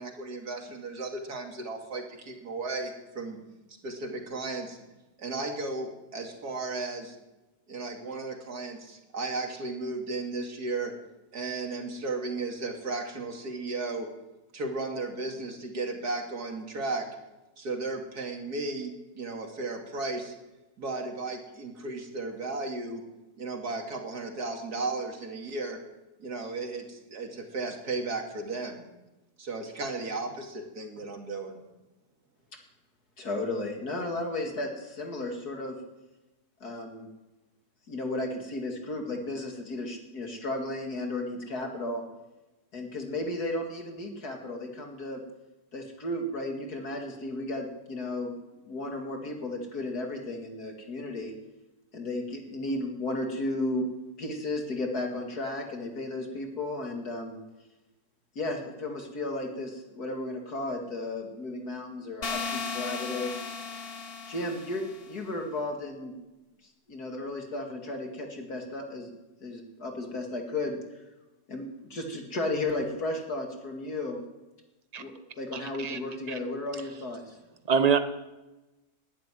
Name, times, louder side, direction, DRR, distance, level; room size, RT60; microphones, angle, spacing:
voice 1, 0.0-3.4 3.8-4.8 5.2-7.2 7.7-10.9 11.3-14.1 14.5-17.1 17.6-20.3 20.8-23.0 23.4-25.8 26.2-28.8 29.4-31.6, right 3 dB, 75° right, 2.8 m, -35 dB
voice 2, 33.2-35.8 36.6-37.1 37.9-42.0 42.7-45.2 45.7-51.3 51.9-53.9 54.2-57.4 58.4-63.3 64.3-66.1 66.9-69.1 69.4-70.8 71.5-74.2 75.0-77.2, left 2 dB, 70° left, 2.8 m, -34 dB
sound 1, 62.2-65.1, left 5 dB, 40° left, 1.3 m, -36 dB
voice 3, 75.5-76.0 76.3-76.4 77.7-78.0, right 6 dB, 30° right, 0.9 m, -25 dB
12.0 x 11.0 x 9.9 m
omnidirectional pair, 1.7 m